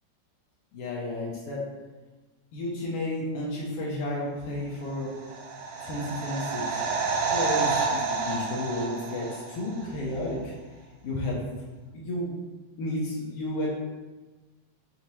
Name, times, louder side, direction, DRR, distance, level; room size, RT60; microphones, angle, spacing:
voice 1, 0.7-1.6 2.5-5.1 5.8-6.6 7.3-10.5 11.0-11.5 11.9-12.3 12.8-13.7, left 1 dB, 90° left, -4 dB, 1.3 m, -32 dB
sound 1, 5.0-9.9 10.1-10.2, right 4 dB, 85° right, 2.0 m, -29 dB
5.2 x 2.7 x 3.0 m, 1.2 s
omnidirectional pair, 3.5 m